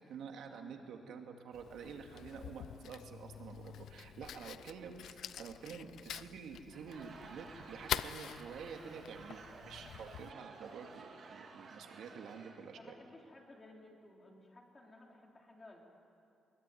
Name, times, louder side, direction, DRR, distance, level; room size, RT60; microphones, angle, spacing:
voice 1, 0.0-12.9, right 6 dB, 75° right, 4 dB, 2.3 m, -49 dB
Fire, 1.5-10.3, left 10 dB, 70° left, 0.6 m, -46 dB
Laughter / Crowd, 6.5-12.8, right 4 dB, 45° right, 2.8 m, -54 dB
voice 2, 12.7-15.8, left 2 dB, 20° left, 0 dB, 3.5 m, -57 dB
22.5 x 22.0 x 9.4 m, 2.6 s
cardioid pair, 170°, 0 cm